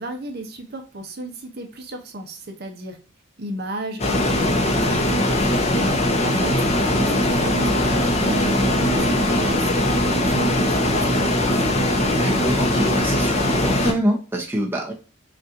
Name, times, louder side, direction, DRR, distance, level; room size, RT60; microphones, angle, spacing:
voice 1, 0.0-3.0 3.4-5.7 6.0-11.6, right 1 dB, 50° right, 4 dB, 0.8 m, -34 dB
sound 1, 4.0-13.9, left 1 dB, 30° left, 0.7 m, -20 dB
voice 2, 12.1-14.9, equal, 10° right, 0 dB, 0.8 m, -25 dB
5.4 x 2.5 x 2.7 m, 0.35 s
head